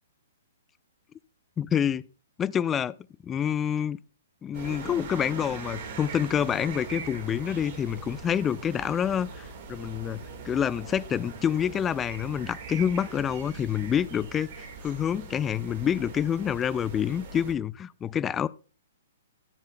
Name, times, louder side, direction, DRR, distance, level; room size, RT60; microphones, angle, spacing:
voice 1, 1.6-2.0 2.4-2.9 3.2-4.0 4.4-18.5, left 8 dB, 20° left, 0.4 m, -27 dB
sound 1, 4.5-17.5, right 4 dB, 50° right, 1.7 m, -41 dB
15.0 x 7.3 x 2.2 m
figure-of-eight pair, 120°, 0 cm